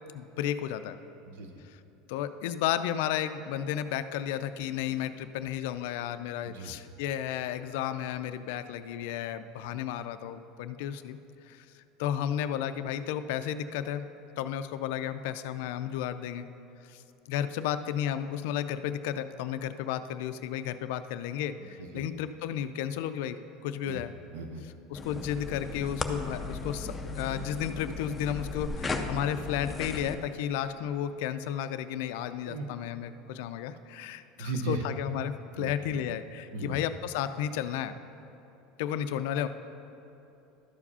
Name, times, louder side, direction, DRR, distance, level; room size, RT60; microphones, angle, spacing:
voice 1, 0.1-1.0 1.6-1.8 2.1-11.2 11.5-11.7 12.0-14.1 14.4-16.5 16.9-17.0 17.3-23.4 23.6-24.1 24.9-37.9 38.8-39.5, left 10 dB, 70° left, 10 dB, 0.3 m, -33 dB
voice 2, 1.3-1.6 6.4-6.7 21.6-22.0 23.8-24.0 24.3-24.6 32.4-32.7 34.4-34.8 35.6-36.0 36.5-36.8, right 3 dB, 80° right, 5 dB, 0.8 m, -37 dB
sound 1, 24.9-30.2, left 3 dB, 10° left, 0.5 m, -36 dB
12.5 x 4.9 x 5.5 m, 2.9 s
cardioid pair, 160°, 0 cm